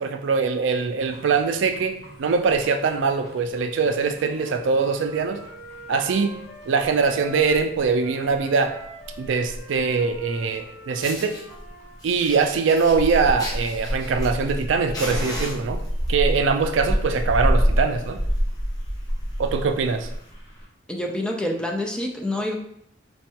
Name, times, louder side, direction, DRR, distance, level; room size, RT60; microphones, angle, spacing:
voice 1, 0.0-5.4 5.9-6.3 6.7-8.7 9.2-11.3 12.0-15.8 16.1-18.2 19.4-20.1, right 5 dB, 80° right, 7 dB, 0.4 m, -22 dB
sound 1, 1.0-20.7, equal, 40° left, 1.5 m, -30 dB
Wind instrument woodwind instrument, 4.0-7.7 8.0-12.0, right 2 dB, 75° left, 0.9 m, -43 dB
Fire, 10.5-10.6 11.0-11.4 12.0-14.6 14.9-16.1 16.9-17.2 17.5-17.6 18.0-18.1 18.3-18.6 19.1-19.2 20.1-20.2, left 1 dB, 20° left, 0.8 m, -36 dB
voice 2, 20.9-22.5, left 1 dB, 5° left, 1 dB, 0.4 m, -27 dB
4.3 x 2.3 x 2.8 m, 0.73 s
head